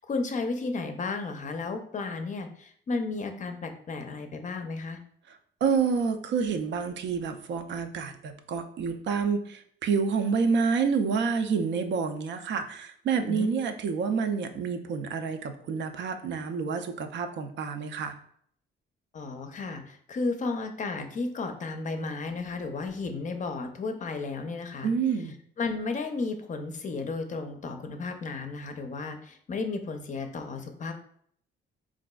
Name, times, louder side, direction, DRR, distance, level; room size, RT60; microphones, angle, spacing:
voice 1, 0.0-5.0 13.3-13.5 19.1-24.9 25.6-30.9, left 3 dB, 40° left, 6 dB, 0.5 m, -33 dB
voice 2, 5.3-18.1 24.8-25.4, right 5 dB, 65° right, 6 dB, 0.4 m, -28 dB
3.9 x 2.5 x 2.2 m, 0.63 s
cardioid pair, 90°, 20 cm